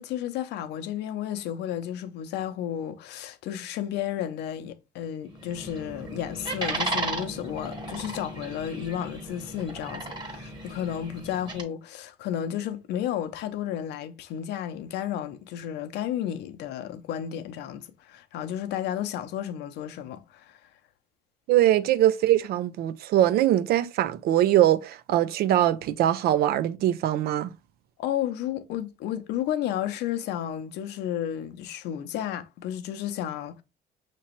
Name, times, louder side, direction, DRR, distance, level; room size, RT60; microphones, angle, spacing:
voice 1, 0.0-20.6 28.0-33.6, left 10 dB, 80° left, 0.6 m, -32 dB
sound 1, 5.3-11.6, right 2 dB, 25° right, 1.3 m, -35 dB
voice 2, 21.5-27.5, right 12 dB, 65° right, 0.4 m, -22 dB
5.8 x 3.0 x 2.9 m
cardioid pair, 110°, 17 cm